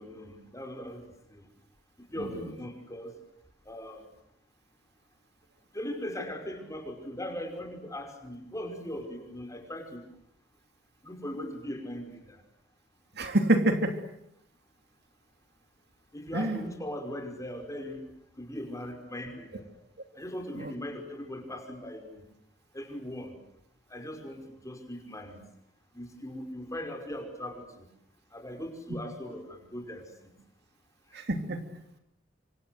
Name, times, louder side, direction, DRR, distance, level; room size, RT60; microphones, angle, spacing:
voice 1, 0.0-1.5 2.0-3.1 3.7-4.1 5.7-10.1 11.0-12.4 16.1-18.1 18.4-19.7 20.1-22.2 22.7-23.4 23.9-25.4 25.9-27.9 28.3-30.3 31.1-31.2, left 1 dB, 15° left, 4 dB, 5.5 m, -39 dB
voice 2, 13.1-14.0 16.3-16.6 20.5-20.7 31.1-31.6, right 1 dB, 60° right, 6 dB, 3.1 m, -27 dB
27.5 x 26.5 x 8.0 m, 0.76 s
head